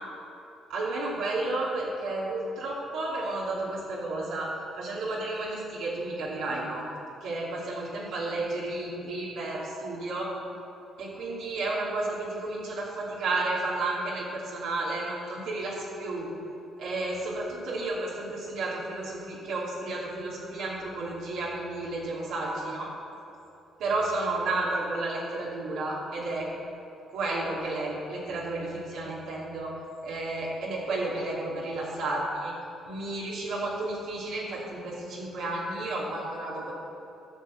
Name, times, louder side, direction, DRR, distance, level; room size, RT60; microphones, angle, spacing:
voice 1, 0.7-4.5 4.8-6.8 7.2-10.3 11.0-16.3 16.8-22.9 23.8-26.5 27.1-29.7 30.0-32.5 32.8-36.7, right 2 dB, 80° right, -6 dB, 2.8 m, -32 dB
13.0 x 6.6 x 7.7 m, 2.9 s
cardioid pair, 90°, 0 cm